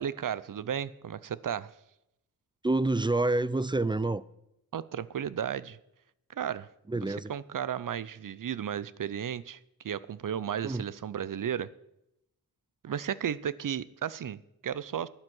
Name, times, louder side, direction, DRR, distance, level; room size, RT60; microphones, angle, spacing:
voice 1, 0.0-1.7 4.7-5.8 6.3-6.7 7.0-11.7 12.8-15.1, right 9 dB, 60° right, 0.6 m, -34 dB
voice 2, 2.6-4.2 6.9-7.3 10.6-10.8, right 2 dB, 15° right, 0.4 m, -27 dB
12.0 x 9.1 x 6.1 m
cardioid pair, 65°, 37 cm